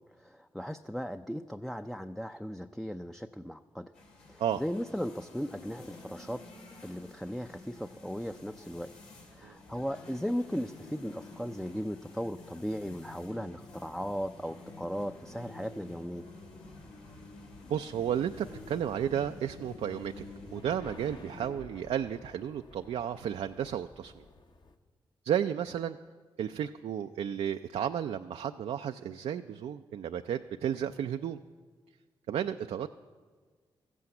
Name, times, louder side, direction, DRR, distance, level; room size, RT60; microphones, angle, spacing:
voice 1, 0.2-3.9 4.3-6.4 6.8-8.9 9.4-16.2, equal, ahead, 7 dB, 0.5 m, -37 dB
sound 1, 3.9-21.5, left 2 dB, 80° left, 2.9 m, -50 dB
sound 2, 16.4-24.8, left 3 dB, 45° left, 1.0 m, -54 dB
voice 2, 17.7-20.2 20.5-24.2 25.2-26.0 26.4-31.4 32.3-32.9, right 9 dB, 70° right, 7 dB, 0.4 m, -33 dB
14.0 x 8.4 x 7.8 m, 1.5 s
supercardioid pair, 50°, 11 cm